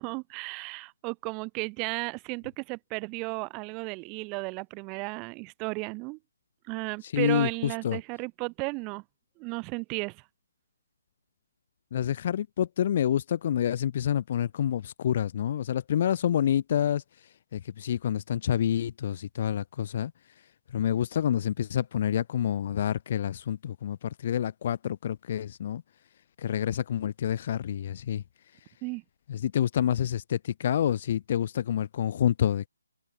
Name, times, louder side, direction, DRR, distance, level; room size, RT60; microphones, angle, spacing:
voice 1, 0.0-6.2 6.6-9.0 9.4-10.3 28.8-29.0, right 29 dB, 15° right, 2.1 m, -34 dB
voice 2, 7.1-7.5 7.8-8.0 11.9-17.0 17.5-20.1 20.7-25.8 26.4-28.2 29.3-32.7, left 10 dB, 35° left, 0.4 m, -28 dB
open air
hypercardioid pair, 160°, 0 cm